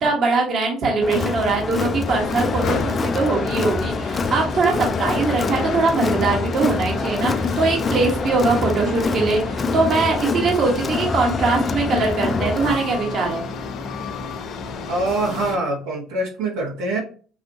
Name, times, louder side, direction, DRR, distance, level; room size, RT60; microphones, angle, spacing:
voice 1, 0.0-13.4, right 3 dB, 50° right, 0 dB, 1.4 m, -21 dB
Crowd, 1.0-12.8, left 4 dB, 30° left, 0.4 m, -25 dB
sound 1, 2.0-15.6, left 4 dB, 60° left, 0.8 m, -31 dB
voice 2, 14.9-17.0, right 2 dB, 75° right, -2 dB, 1.4 m, -24 dB
5.4 x 2.6 x 2.9 m, 0.40 s
hypercardioid pair, 70°, 0 cm